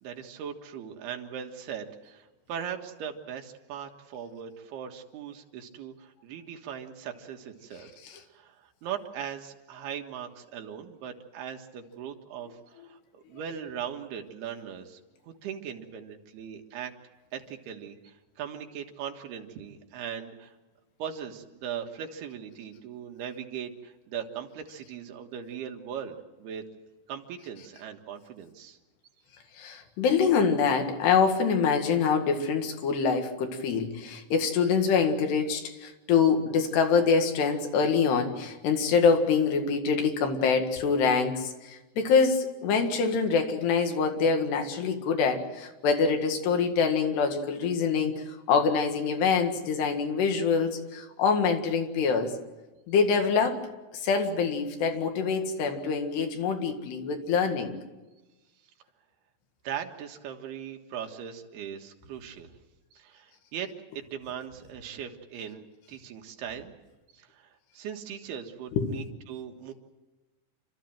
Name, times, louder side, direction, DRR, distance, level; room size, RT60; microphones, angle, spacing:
voice 1, 0.0-7.9 8.3-15.0 15.3-16.9 17.3-20.6 21.0-26.7 27.1-28.8 59.6-62.5 62.9-63.7 64.0-66.7 67.1-69.7, right 8 dB, 75° right, 3 dB, 3.5 m, -39 dB
voice 2, 29.6-52.4 52.9-53.6 53.9-57.8 68.7-68.9, left 5 dB, 75° left, 5 dB, 4.0 m, -25 dB
28.0 x 13.5 x 9.2 m, 1.1 s
omnidirectional pair, 4.8 m